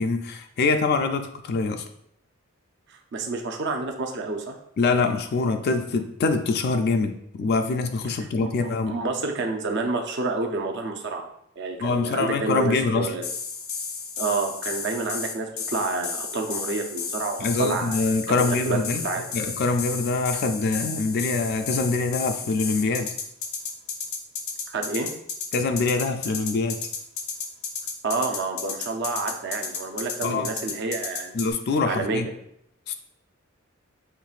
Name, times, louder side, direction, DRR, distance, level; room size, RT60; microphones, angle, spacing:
voice 1, 0.0-1.8 4.8-9.0 11.8-13.1 17.4-19.1 19.3-23.1 25.5-26.8 30.2-30.5 31.3-32.3 32.9-33.0, left 3 dB, 50° left, 6 dB, 0.3 m, -24 dB
voice 2, 3.1-4.6 8.4-11.3 11.6-13.3 14.2-18.0 18.3-18.4 18.7-18.8 19.0-19.2 24.7-25.1 28.0-31.4 31.9-32.3, right 3 dB, 55° right, 3 dB, 0.5 m, -29 dB
sound 1, 13.2-31.5, left 5 dB, 75° left, 0.7 m, -33 dB
5.7 x 3.0 x 2.4 m, 0.73 s
head